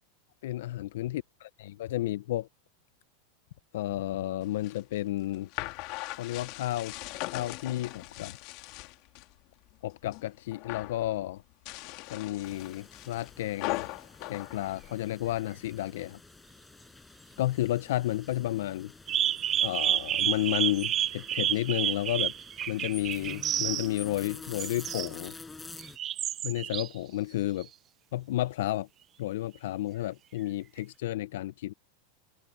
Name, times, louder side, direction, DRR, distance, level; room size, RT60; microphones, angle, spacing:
voice 1, 0.4-1.2 1.6-2.5 3.7-5.5 6.1-7.0 7.3-8.4 9.8-11.4 12.1-13.9 14.3-16.2 17.4-18.9 19.6-22.3 22.7-25.3 26.4-27.7 28.1-28.9 29.2-31.7, left 15 dB, 75° left, 0.5 m, -32 dB
sound 1, 4.4-9.3 9.7-10.2 10.5-11.0 11.5-15.4, left 21 dB, 50° left, 1.8 m, -40 dB
sound 2, 12.4-26.0, left 3 dB, 10° left, 5.4 m, -49 dB
sound 3, 13.7-13.8 19.1-23.9 24.6-25.1 25.8-26.9 27.6-27.7, right 11 dB, 25° right, 0.4 m, -30 dB
open air
supercardioid pair, 150°, 0 cm